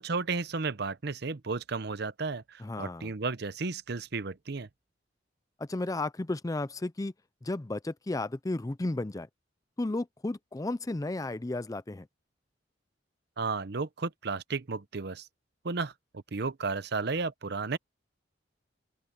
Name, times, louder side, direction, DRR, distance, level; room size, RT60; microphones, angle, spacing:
voice 1, 0.0-4.7 13.4-15.3 15.6-15.9 16.3-17.8, right 4 dB, 60° right, 0.8 m, -33 dB
voice 2, 2.6-3.1 5.6-7.1 7.4-9.3 9.8-12.1, left 2 dB, 20° left, 0.5 m, -33 dB
open air
head